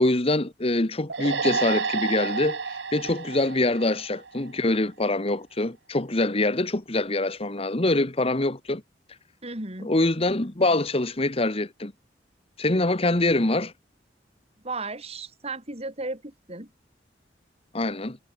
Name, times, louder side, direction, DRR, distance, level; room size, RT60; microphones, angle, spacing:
voice 1, 0.0-8.8 9.8-11.9 12.6-13.7 17.7-18.2, left 2 dB, 35° left, 1.5 m, -24 dB
sound 1, 1.1-4.6, right 5 dB, 80° right, 1.4 m, -30 dB
voice 2, 9.4-9.9 14.6-16.7, right 3 dB, 35° right, 7.3 m, -35 dB
head